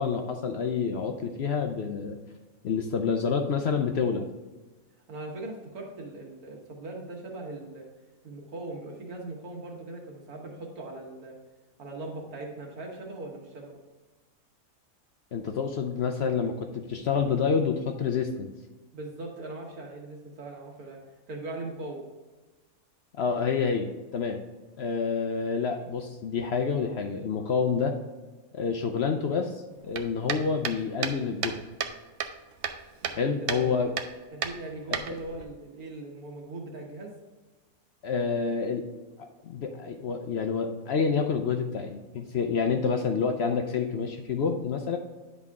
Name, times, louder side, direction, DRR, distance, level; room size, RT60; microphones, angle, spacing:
voice 1, 0.0-2.2 2.6-4.3 15.3-18.5 23.2-24.4 24.8-28.0 28.5-31.6 33.1-33.9 34.9-35.2 38.0-38.8 39.2-45.0, left 5 dB, 65° left, 5 dB, 0.7 m, -28 dB
voice 2, 5.1-7.9 8.2-11.4 11.8-13.8 18.9-21.0 21.3-22.1 33.0-33.9 34.3-37.1, right 2 dB, 85° right, 0 dB, 1.9 m, -40 dB
sound 1, 29.9-31.9 32.2-33.2 33.5-33.6 34.0-34.1 34.4-35.4, right 7 dB, 65° right, 0.8 m, -32 dB
9.8 x 4.0 x 3.6 m, 1.2 s
omnidirectional pair, 1.5 m